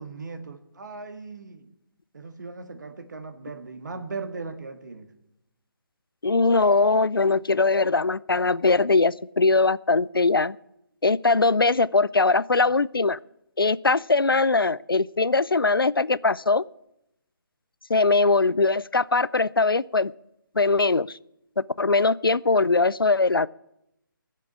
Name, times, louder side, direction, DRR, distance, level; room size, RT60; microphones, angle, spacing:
voice 1, 0.0-1.7 2.1-5.1, right 4 dB, 55° right, 8 dB, 1.7 m, -38 dB
voice 2, 6.2-10.6 11.0-13.2 13.6-16.6 17.9-20.1 20.6-21.2 21.6-23.5, left 3 dB, 80° left, 21 dB, 0.4 m, -21 dB
19.0 x 7.6 x 8.6 m, 0.83 s
figure-of-eight pair, 145°, 12 cm